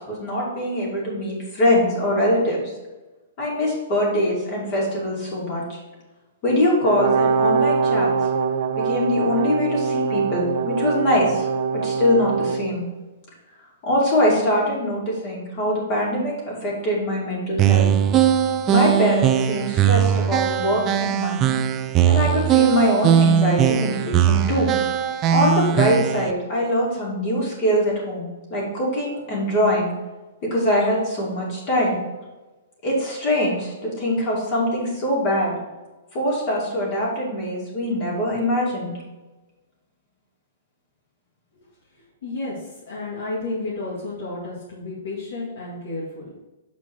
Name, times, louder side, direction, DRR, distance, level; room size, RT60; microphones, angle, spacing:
voice 1, 0.1-2.7 3.4-5.8 6.4-8.1 8.8-11.5 11.7-12.8 13.8-17.9 18.7-21.5 22.0-24.7 25.3-29.9 30.4-32.0 32.8-35.6 36.1-39.0, left 1 dB, 30° left, -4 dB, 2.5 m, -23 dB
Brass instrument, 6.8-12.7, right 5 dB, 45° right, 0.8 m, -23 dB
sound 1, 17.6-26.3, right 9 dB, 20° right, 0.4 m, -19 dB
voice 2, 42.2-46.3, left 2 dB, 70° left, -6 dB, 2.0 m, -31 dB
7.1 x 4.6 x 4.5 m, 1.1 s
hypercardioid pair, 165°, 0 cm